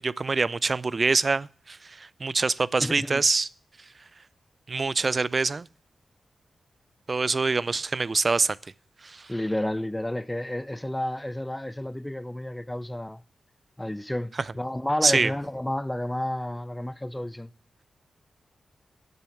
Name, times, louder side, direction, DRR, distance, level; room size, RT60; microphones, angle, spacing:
voice 1, 0.0-3.5 4.7-5.7 7.1-8.6 9.0-9.3 15.0-15.3, right 4 dB, 50° right, 0.4 m, -25 dB
voice 2, 2.8-3.2 9.3-13.2 13.8-17.5, left 1 dB, 15° left, 0.4 m, -31 dB
7.9 x 7.0 x 6.9 m
supercardioid pair, 40°, 0 cm